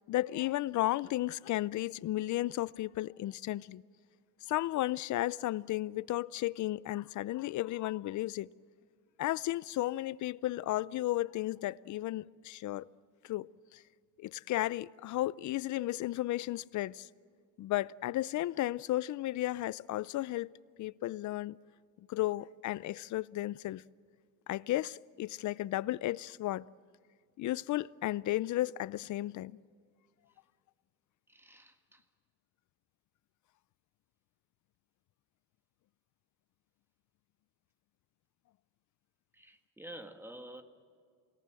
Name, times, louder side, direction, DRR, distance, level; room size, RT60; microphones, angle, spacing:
voice 1, 0.1-3.8 4.5-8.5 9.2-12.9 13.2-13.5 14.2-17.1 17.6-20.5 20.8-21.6 22.1-23.8 24.5-26.6 27.4-29.5, left 15 dB, 55° left, 0.6 m, -34 dB
voice 2, 31.3-32.0 39.3-40.6, right 1 dB, 5° right, 1.9 m, -49 dB
28.5 x 18.5 x 7.7 m
cardioid pair, 115°, 35 cm